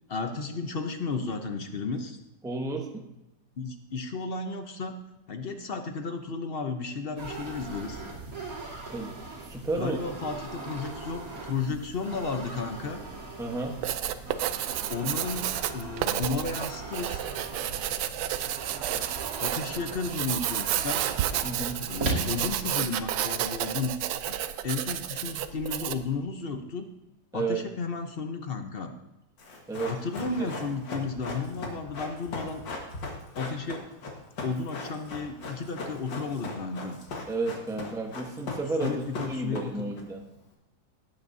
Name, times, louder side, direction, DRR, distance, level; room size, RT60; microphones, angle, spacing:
voice 1, 0.1-2.2 3.6-4.9 5.3-8.0 9.7-13.0 14.9-17.3 19.4-21.0 21.9-23.9 24.3-24.4 24.6-26.9 27.3-28.9 29.9-32.6 33.3-33.8 34.4-37.0 38.8-39.6, left 4 dB, 55° left, 6 dB, 0.6 m, -33 dB
voice 2, 2.4-3.1 8.9-10.0 13.4-13.8 21.4-21.8 27.3-27.6 29.7-30.0 30.4-30.6 37.3-40.2, right 3 dB, 5° right, 2 dB, 0.6 m, -32 dB
sound 1, 7.2-22.7, right 3 dB, 50° right, 2.5 m, -39 dB
Writing, 13.6-26.1, right 11 dB, 80° right, 1.2 m, -31 dB
Run, 29.4-40.0 40.3-40.4, left 3 dB, 80° left, 2.3 m, -38 dB
18.0 x 8.8 x 2.7 m, 0.92 s
omnidirectional pair, 2.0 m